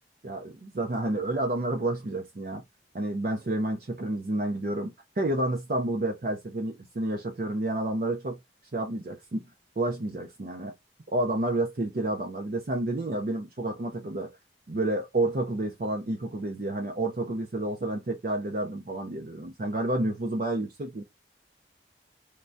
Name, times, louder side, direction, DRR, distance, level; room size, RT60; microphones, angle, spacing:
voice 1, 0.2-2.6 2.9-8.4 8.7-9.4 9.8-10.7 11.1-14.3 14.7-21.0, right 1 dB, 50° right, 0.5 m, -30 dB
3.2 x 2.2 x 2.5 m
head